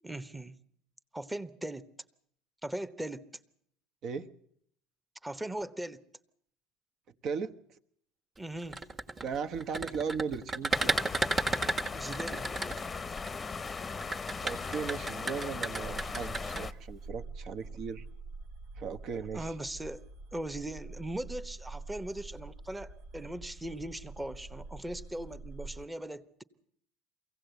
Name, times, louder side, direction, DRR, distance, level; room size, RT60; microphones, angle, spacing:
voice 1, 0.0-0.6 1.1-1.9 2.6-3.3 5.2-6.0 8.4-8.8 11.9-12.5 19.1-20.0 20.3-26.4, right 1 dB, 10° right, 12 dB, 1.1 m, -39 dB
voice 2, 7.2-7.5 9.2-11.0 14.4-18.0 18.8-19.5, right 6 dB, 50° right, 9 dB, 1.1 m, -37 dB
sound 1, 8.6-13.3 14.0-16.6, right 3 dB, 25° right, 1.6 m, -32 dB
sound 2, 10.7-16.7, left 4 dB, 25° left, 0.8 m, -38 dB
sound 3, 15.8-25.9, right 3 dB, 75° right, 1.3 m, -46 dB
23.5 x 16.5 x 8.1 m, 0.68 s
supercardioid pair, 90°, 0 cm